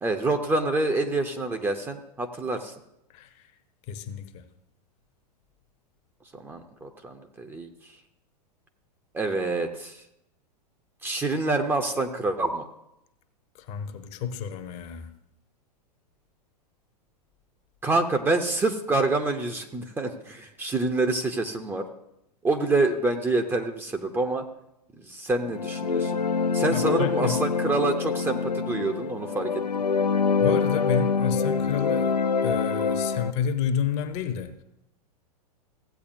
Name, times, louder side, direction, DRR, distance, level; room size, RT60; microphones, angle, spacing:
voice 1, 0.0-2.7 6.3-7.7 9.1-10.0 11.0-12.6 17.8-21.8 22.4-24.4 25.0-26.2 26.5-29.6, right 2 dB, 10° right, 0.6 m, -27 dB
voice 2, 3.1-3.4 3.9-4.5 13.6-15.1 26.7-27.4 30.4-32.2 32.4-34.5, left 8 dB, 30° left, 0.8 m, -30 dB
sound 1, 25.4-33.3, left 5 dB, 80° left, 0.6 m, -25 dB
16.0 x 8.3 x 2.6 m
figure-of-eight pair, 100°, 21 cm